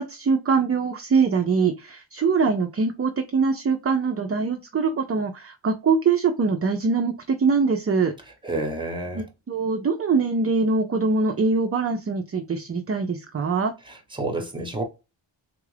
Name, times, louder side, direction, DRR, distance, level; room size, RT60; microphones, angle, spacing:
voice 1, 0.0-8.1 9.1-13.7, right 4 dB, 30° right, 0.4 m, -23 dB
voice 2, 8.4-9.2 13.9-14.8, right 2 dB, 10° right, 1.0 m, -29 dB
3.6 x 2.4 x 3.2 m
wide cardioid pair, 120°, 49 cm